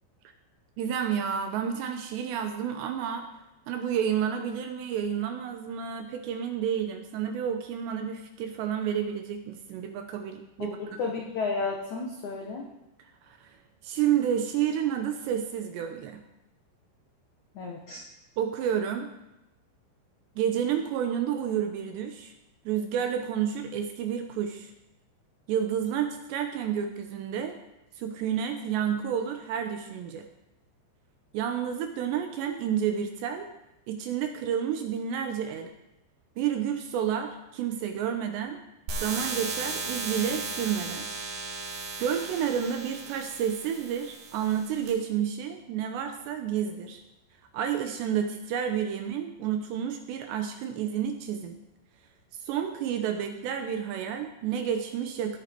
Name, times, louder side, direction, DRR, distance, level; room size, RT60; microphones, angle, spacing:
voice 1, 0.8-3.3 3.7-10.8 13.3-13.5 13.8-16.2 18.4-19.1 20.4-22.3 22.7-24.7 25.5-27.6 28.0-30.3 31.3-33.5 33.9-35.7 36.4-38.6 39.0-41.1 42.0-47.0 47.5-51.6 52.5-55.4, right 8 dB, 75° right, 6 dB, 2.8 m, -30 dB
voice 2, 10.6-12.7 17.5-18.0, left 4 dB, 80° left, 0 dB, 1.7 m, -32 dB
sound 1, 38.9-44.9, right 3 dB, 60° right, 5.6 m, -36 dB
18.5 x 8.4 x 4.6 m, 0.91 s
omnidirectional pair, 5.6 m